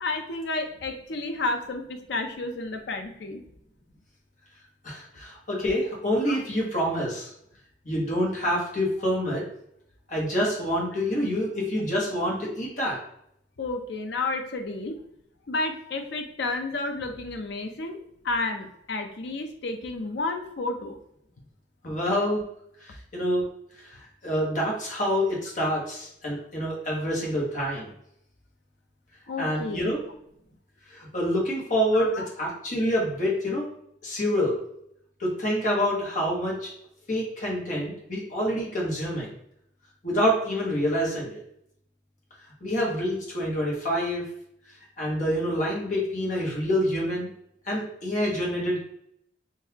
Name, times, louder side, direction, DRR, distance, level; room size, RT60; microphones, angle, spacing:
voice 1, 0.0-3.4 6.3-6.4 13.6-14.9 15.5-18.0 18.2-20.9 29.3-29.9 31.9-32.3, left 3 dB, 70° left, 5 dB, 0.5 m, -31 dB
voice 2, 4.8-7.3 7.8-9.4 10.1-13.0 21.8-22.4 22.8-23.4 23.8-27.9 29.4-30.0 30.9-32.1 32.4-33.6 34.0-34.6 35.2-36.7 37.1-39.3 40.0-41.4 42.6-44.2 45.0-47.3 47.6-48.8, equal, 45° left, -3 dB, 1.2 m, -27 dB
3.8 x 2.7 x 2.8 m, 0.72 s
head